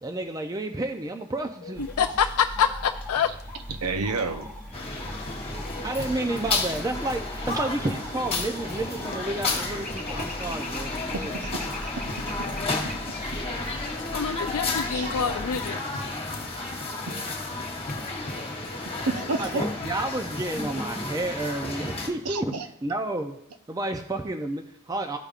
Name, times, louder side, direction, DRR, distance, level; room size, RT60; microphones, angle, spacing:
voice 1, 0.0-1.9 5.8-11.3 19.4-19.5 19.8-22.5 22.8-23.3 23.7-25.2, right 2 dB, 15° right, 4 dB, 0.4 m, -30 dB
sound 1, 1.7-15.7, left 1 dB, 5° left, 1.1 m, -39 dB
voice 2, 1.8-3.3 14.1-15.8, left 7 dB, 70° left, 8 dB, 0.3 m, -26 dB
voice 3, 3.7-4.5 11.1-11.9 12.2-12.3 12.6-12.7 13.1-13.2 14.9-15.1 15.9-16.0 18.9-19.6 22.2-22.7, right 3 dB, 85° right, 7 dB, 0.8 m, -31 dB
sound 2, 4.4-20.5, left 2 dB, 40° left, 0.9 m, -44 dB
sound 3, 4.7-22.1, left 3 dB, 25° left, 1.4 m, -32 dB
14.0 x 5.1 x 2.4 m, 0.75 s
head